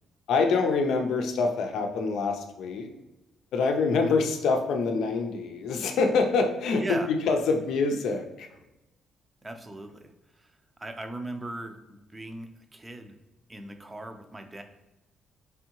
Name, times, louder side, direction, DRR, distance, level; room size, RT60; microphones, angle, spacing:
voice 1, 0.3-2.9 3.5-8.5, left 4 dB, 80° left, 4 dB, 0.5 m, -25 dB
voice 2, 6.8-7.1 9.4-13.1 13.5-14.6, right 1 dB, 20° right, 6 dB, 0.5 m, -39 dB
3.6 x 3.4 x 2.9 m, 0.95 s
cardioid pair, 90°, 0 cm